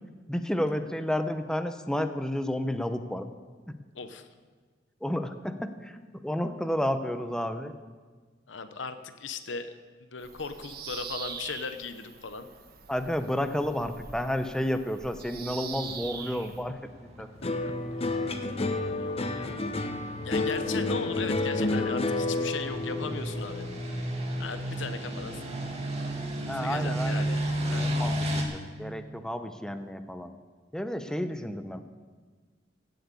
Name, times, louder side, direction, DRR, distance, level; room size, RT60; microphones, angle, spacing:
voice 1, 0.3-3.2 3.7-3.8 5.0-7.7 12.9-16.8 17.2-17.3 26.5-27.2 27.8-30.3 30.7-31.8, left 1 dB, 5° left, 8 dB, 0.8 m, -31 dB
voice 2, 3.9-4.3 8.5-9.7 10.0-12.5 17.6-17.7 18.7-19.6 20.2-23.7 24.4-25.4 26.6-27.4 27.7-27.9, left 5 dB, 85° left, 9 dB, 0.9 m, -38 dB
Bird vocalization bird call bird song, 10.2-16.6, right 6 dB, 55° right, 1.3 m, -43 dB
sound 1, 15.6-28.4, right 1 dB, 35° right, 2.1 m, -34 dB
sound 2, 17.4-25.9 26.2-26.8, left 2 dB, 35° left, 0.8 m, -31 dB
16.5 x 7.9 x 8.4 m, 1.4 s
head